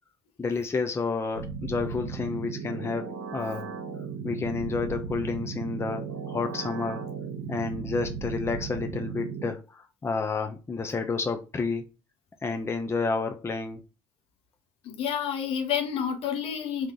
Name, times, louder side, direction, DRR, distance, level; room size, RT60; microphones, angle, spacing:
voice 1, 0.4-3.7 4.2-7.1 7.5-11.9 12.4-13.8, left 4 dB, 25° left, 0.7 m, -30 dB
sound 1, 1.3-9.5, right 5 dB, 85° right, 0.9 m, -36 dB
voice 2, 14.8-16.9, left 8 dB, 65° left, 1.2 m, -29 dB
3.7 x 3.0 x 3.7 m
hypercardioid pair, 70°, 11 cm